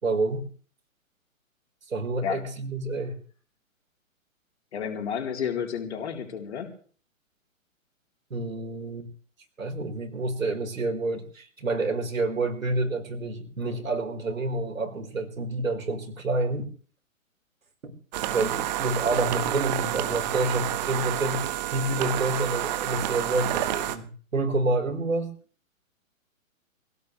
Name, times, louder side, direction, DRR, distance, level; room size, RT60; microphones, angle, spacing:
voice 1, 0.0-0.4 1.9-3.2 8.3-9.1 9.6-16.7 17.8-17.9 18.3-25.3, right 2 dB, 70° right, 3 dB, 4.9 m, -28 dB
voice 2, 4.7-6.7, left 7 dB, 50° left, 3 dB, 4.1 m, -31 dB
sound 1, 18.1-24.0, right 13 dB, 30° right, 1.5 m, -29 dB
24.0 x 17.0 x 3.4 m, 0.43 s
figure-of-eight pair, 125°, 41 cm